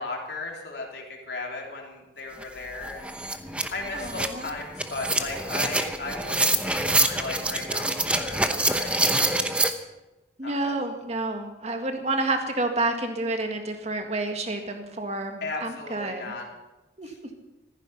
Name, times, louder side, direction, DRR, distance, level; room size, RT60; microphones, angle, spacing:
voice 1, 0.0-9.3 10.4-10.7 15.4-16.5, left 3 dB, 65° left, -1 dB, 3.3 m, -36 dB
sound 1, 2.4-2.5 2.8-9.7, right 2 dB, 5° right, 0.8 m, -26 dB
voice 2, 3.9-4.5 10.4-16.3 17.0-17.1, right 2 dB, 35° right, 5 dB, 1.8 m, -29 dB
15.0 x 14.5 x 5.7 m, 1.0 s
head